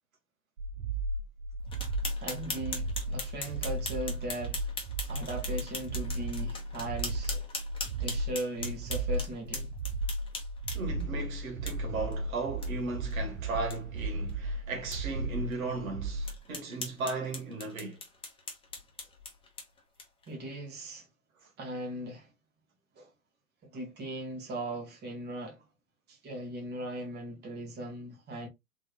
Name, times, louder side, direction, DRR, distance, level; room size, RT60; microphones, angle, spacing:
sound 1, 0.6-16.4, right 2 dB, 85° right, 0.7 m, -35 dB
sound 2, 1.7-11.0 11.7-11.8 12.1-12.2 12.6-12.7 13.1-13.2 13.5-13.8 14.3-14.4 14.9-15.0 15.5-15.6 16.2-20.3, left 3 dB, 10° left, 1.1 m, -40 dB
voice 1, 2.2-4.8 5.0-7.5 7.9-9.7 20.3-21.1 21.6-22.3 22.9-23.1 23.6-25.7 26.1-28.5, right 1 dB, 25° right, 1.7 m, -38 dB
voice 2, 10.7-18.0, right 3 dB, 70° right, 1.6 m, -36 dB
3.6 x 3.5 x 2.3 m
hypercardioid pair, 120°, 43 cm